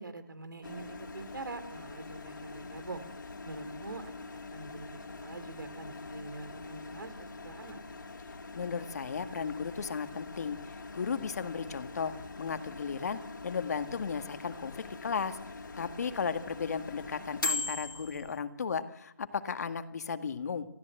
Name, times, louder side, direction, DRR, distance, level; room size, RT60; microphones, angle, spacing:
voice 1, 0.0-3.0 3.4-4.1 4.5-7.8, right 3 dB, 90° right, 11 dB, 4.0 m, -44 dB
Microwave oven, 0.6-18.4, left 3 dB, 80° left, 3.7 m, -42 dB
voice 2, 8.5-20.7, left 6 dB, 50° left, 8 dB, 1.9 m, -35 dB
27.5 x 16.0 x 7.9 m, 0.80 s
hypercardioid pair, 165°, 11 cm